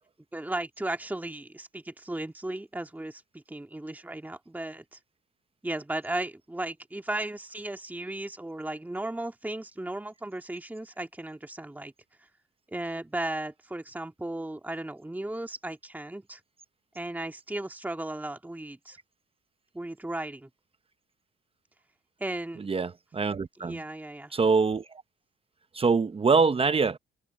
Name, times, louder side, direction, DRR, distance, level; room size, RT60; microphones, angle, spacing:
voice 1, 0.3-5.0 5.6-11.9 12.2-12.3 12.7-16.4 17.0-19.0 19.7-20.5 22.2-22.6 23.6-24.3, right 1 dB, 10° right, 1.8 m, -35 dB
voice 2, 22.7-23.8 24.3-24.8 25.7-27.0, right 4 dB, 30° right, 0.8 m, -24 dB
cardioid pair, 90°, 20 cm